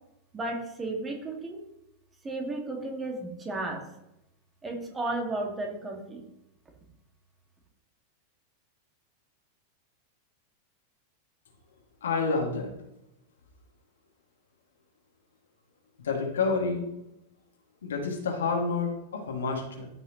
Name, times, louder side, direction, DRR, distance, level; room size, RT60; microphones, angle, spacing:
voice 1, 0.3-1.6 2.2-3.8 4.6-6.2, right 2 dB, 20° right, 1 dB, 1.9 m, -33 dB
voice 2, 12.0-12.7 16.0-16.9 17.8-19.9, left 4 dB, 65° left, 1 dB, 2.1 m, -29 dB
14.0 x 5.7 x 3.0 m, 0.86 s
figure-of-eight pair, 90°, 0 cm